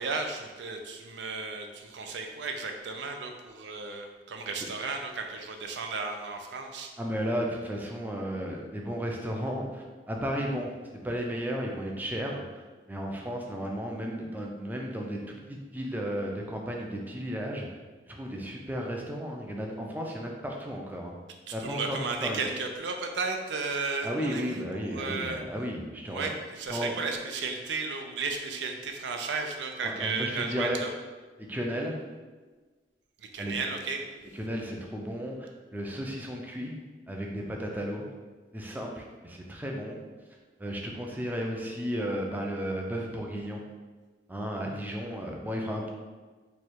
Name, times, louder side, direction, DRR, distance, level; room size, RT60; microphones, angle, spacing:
voice 1, 0.0-6.9 21.5-25.4 26.1-30.9 33.3-34.0, right 4 dB, 85° right, 4 dB, 0.5 m, -34 dB
voice 2, 7.0-10.7 11.0-17.7 18.1-21.1 21.5-22.4 24.0-26.3 26.7-26.9 29.8-30.8 31.5-32.0 33.4-33.6 34.3-36.8 37.1-38.1 38.5-40.0 40.6-43.6 44.3-45.9, equal, 10° right, 0 dB, 0.4 m, -34 dB
3.1 x 2.3 x 4.3 m, 1.3 s
head